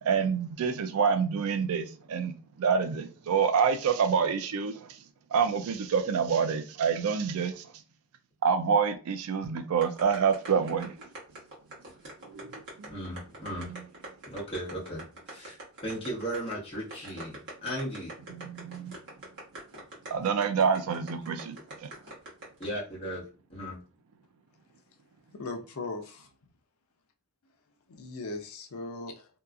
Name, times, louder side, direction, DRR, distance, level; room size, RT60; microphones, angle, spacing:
voice 1, 0.0-5.0 5.3-7.7 8.4-10.9 12.3-12.6 13.5-13.8 18.3-18.9 20.1-21.6 21.8-21.9, right 6 dB, 80° right, 0.4 m, -27 dB
sound 1, 9.8-22.7, right 2 dB, 55° right, 1.1 m, -43 dB
voice 2, 12.9-13.7 14.3-15.6 15.8-18.1 22.6-23.8, equal, 25° left, 1.1 m, -36 dB
voice 3, 25.3-26.3 27.9-29.3, left 3 dB, 80° left, 0.5 m, -38 dB
2.7 x 2.3 x 2.4 m
head